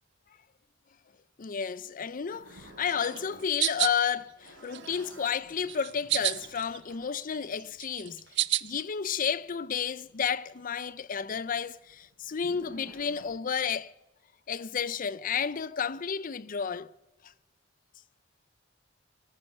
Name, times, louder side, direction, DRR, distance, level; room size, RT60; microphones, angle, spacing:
voice 1, 1.4-8.2 8.6-13.9 14.5-16.9 17.2-17.3, left 7 dB, 45° left, 0.5 m, -31 dB
sound 1, 2.3-3.5 3.8-9.9 10.2-13.8, right 2 dB, 85° right, 4.4 m, -53 dB
sound 2, 2.9-4.0 4.5-5.3 5.7-6.8 7.1-8.8, right 15 dB, 60° right, 0.4 m, -30 dB
19.0 x 13.5 x 5.6 m
head